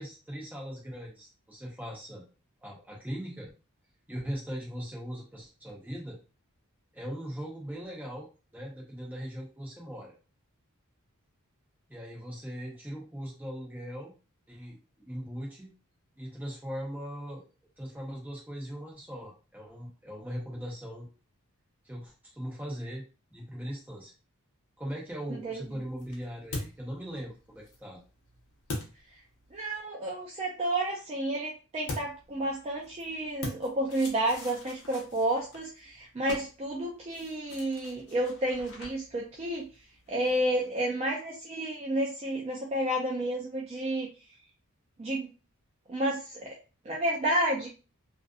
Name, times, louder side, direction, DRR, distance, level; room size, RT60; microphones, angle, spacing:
voice 1, 0.0-2.2 2.6-3.5 4.1-6.2 6.9-8.3 8.5-10.1 11.9-14.1 14.5-15.7 16.2-17.4 17.8-21.1 21.8-23.0 23.3-24.1 24.8-28.0, equal, 10° right, -2 dB, 0.8 m, -39 dB
voice 2, 25.3-25.7 29.5-39.7 40.1-44.1 45.0-45.3 45.9-46.5 46.8-47.7, right 1 dB, 30° right, -2 dB, 0.4 m, -31 dB
sound 1, 25.4-29.8 31.8-40.7, left 2 dB, 60° left, 0.7 m, -44 dB
2.4 x 2.4 x 2.3 m, 0.33 s
head